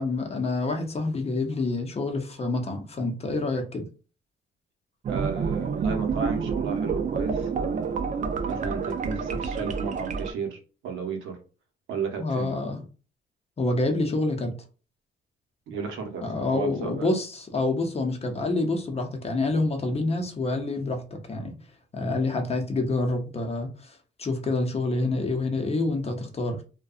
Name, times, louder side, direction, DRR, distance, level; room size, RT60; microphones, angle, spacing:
voice 1, 0.0-3.9 12.2-12.8 13.6-14.5 16.2-21.6 21.9-26.6, left 2 dB, 30° left, 0.6 m, -27 dB
sound 1, 5.0-10.3, right 5 dB, 40° right, 0.4 m, -28 dB
voice 2, 5.1-11.4 11.9-12.5 15.7-16.2 16.5-17.1, right 5 dB, 80° right, 0.8 m, -34 dB
2.6 x 2.2 x 2.3 m
cardioid pair, 90°, 20 cm